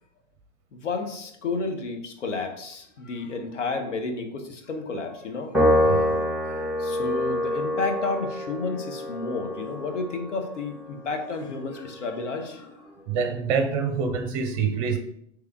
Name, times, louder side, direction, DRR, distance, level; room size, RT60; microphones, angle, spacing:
voice 1, 0.7-6.1 6.4-12.7, left 3 dB, 75° left, 4 dB, 1.0 m, -31 dB
Piano, 5.5-12.1, left 1 dB, ahead, 1.7 m, -27 dB
voice 2, 5.8-6.2 13.1-15.0, right 6 dB, 40° right, 6 dB, 0.7 m, -26 dB
3.4 x 3.3 x 4.6 m, 0.71 s
figure-of-eight pair, 95°, 36 cm